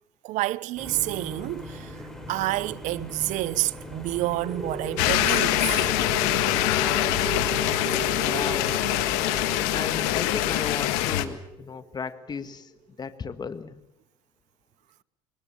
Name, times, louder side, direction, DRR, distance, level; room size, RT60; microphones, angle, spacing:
voice 1, 0.2-2.0 2.3-5.9, right 17 dB, 70° right, 0.8 m, -29 dB
sound 1, 0.8-10.5, left 1 dB, 5° left, 7.1 m, -40 dB
sound 2, 4.4-12.8, right 2 dB, 30° right, 5.9 m, -36 dB
sound 3, 5.0-11.3, left 15 dB, 80° left, 1.7 m, -24 dB
voice 2, 8.1-8.8 9.7-12.7 13.0-13.8, left 6 dB, 30° left, 1.6 m, -35 dB
24.0 x 20.5 x 7.3 m
supercardioid pair, 75°, 13 cm